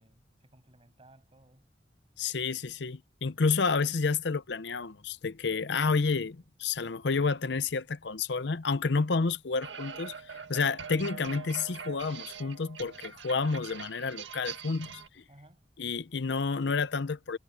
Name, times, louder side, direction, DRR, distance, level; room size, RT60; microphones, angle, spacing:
voice 1, 0.0-1.7 15.3-15.6, right 1 dB, 30° right, 7.5 m, -59 dB
voice 2, 2.2-10.1 10.5-15.0 15.8-17.4, left 4 dB, 65° left, 0.7 m, -30 dB
sound 1, 9.6-15.1, right 6 dB, 80° right, 1.8 m, -43 dB
head